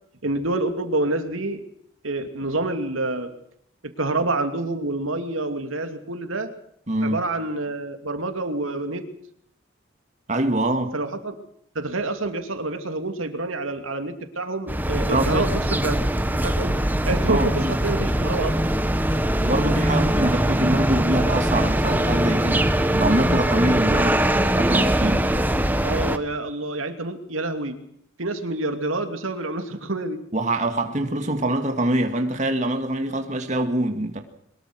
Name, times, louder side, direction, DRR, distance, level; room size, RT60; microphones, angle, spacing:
voice 1, 0.2-1.6 2.0-3.3 3.8-6.5 7.0-9.1 10.9-11.4 11.7-16.0 16.4-16.7 17.1-18.7 25.8-27.8 28.2-30.2, right 2 dB, 80° right, 2.7 m, -27 dB
voice 2, 6.9-7.2 10.3-10.9 15.1-15.6 17.3-17.7 19.4-22.7 22.9-25.2 30.3-34.2, right 1 dB, 35° right, 2.1 m, -24 dB
sound 1, 14.7-26.2, right 1 dB, 10° right, 1.2 m, -22 dB
23.0 x 21.5 x 6.2 m
head